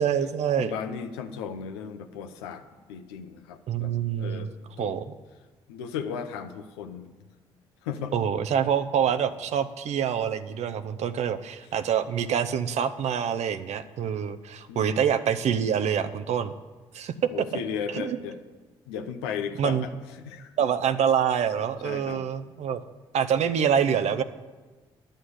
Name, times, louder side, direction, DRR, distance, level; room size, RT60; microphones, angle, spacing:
voice 1, 0.0-0.7 3.7-4.5 4.8-5.0 8.1-16.5 16.9-17.3 17.9-18.2 19.6-19.8 20.6-22.8 23.1-24.2, right 8 dB, 65° right, 10 dB, 0.7 m, -26 dB
voice 2, 0.6-4.5 4.8-4.9 5.7-7.3 7.8-8.2 14.7-15.1 17.3-18.4 18.9-19.9 20.2-20.5 21.8-22.2, left 7 dB, 90° left, 8 dB, 0.7 m, -35 dB
11.0 x 6.6 x 8.1 m, 1.3 s
hypercardioid pair, 50°, 12 cm